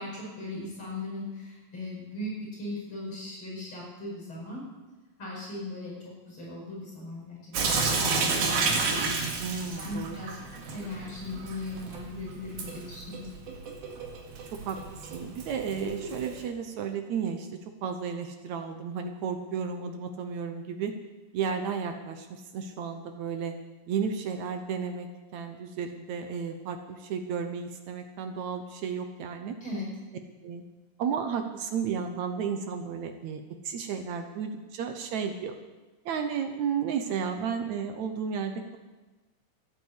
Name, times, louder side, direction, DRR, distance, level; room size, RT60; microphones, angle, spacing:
voice 1, 0.0-4.6 5.2-8.9 9.8-10.4 10.7-13.3 29.6-29.9, left 2 dB, 35° left, -4 dB, 5.9 m, -38 dB
Sink (filling or washing) / Drip, 7.5-16.4, right 4 dB, 90° right, 3.8 m, -31 dB
voice 2, 9.4-10.2 14.5-14.8 15.1-20.9 21.3-23.6 23.9-25.1 25.3-29.6 30.4-30.6 31.0-35.5 36.1-38.8, right 6 dB, 65° right, 6 dB, 2.0 m, -33 dB
14.0 x 10.5 x 8.3 m, 1.2 s
omnidirectional pair, 4.1 m